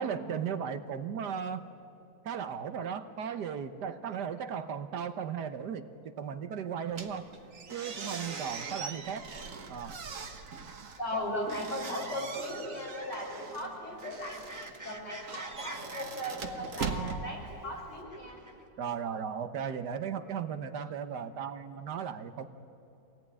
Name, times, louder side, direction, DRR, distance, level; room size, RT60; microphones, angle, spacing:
voice 1, 0.0-1.7 2.2-7.3 7.7-9.3 9.7-10.0 11.1-11.4 18.8-22.5, right 7 dB, 70° right, 10 dB, 1.5 m, -36 dB
sound 1, 6.9-10.1 10.4-18.6, right 2 dB, 10° right, 1.3 m, -51 dB
sound 2, 6.9-18.0, right 5 dB, 50° right, 1.6 m, -41 dB
voice 2, 11.0-14.5 14.8-18.4, left 1 dB, 70° left, -1 dB, 6.2 m, -37 dB
24.0 x 18.0 x 9.8 m, 2.8 s
omnidirectional pair, 1.9 m